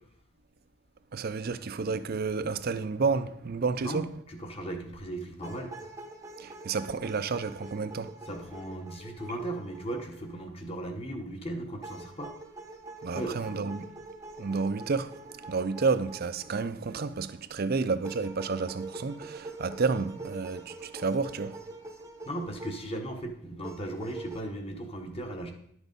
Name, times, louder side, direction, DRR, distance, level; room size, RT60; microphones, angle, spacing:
voice 1, 1.1-4.1 6.4-8.1 13.0-13.9 14.4-21.6, right 4 dB, 45° right, 0.4 m, -30 dB
voice 2, 3.8-5.7 8.2-12.3 13.1-13.6 22.3-25.5, right 1 dB, 25° left, 1.1 m, -37 dB
sound 1, 5.4-10.5 11.8-17.3 18.0-23.0 23.6-24.4, right 2 dB, 15° right, 0.7 m, -45 dB
10.5 x 6.2 x 5.3 m
head